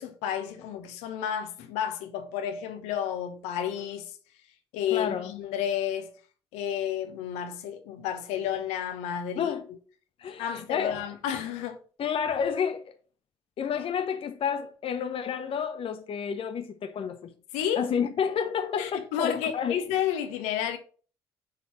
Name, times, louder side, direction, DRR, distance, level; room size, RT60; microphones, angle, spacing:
voice 1, 0.0-4.2 4.7-6.1 6.5-9.5 10.4-11.8 17.5-17.9 18.8-20.8, left 9 dB, 70° left, 1.0 m, -31 dB
voice 2, 4.9-5.3 9.4-9.6 10.2-11.0 12.0-12.9 13.6-17.3 17.8-19.8, left 7 dB, 50° left, 0.9 m, -30 dB
6.6 x 3.9 x 6.1 m
hypercardioid pair, 45°, 12 cm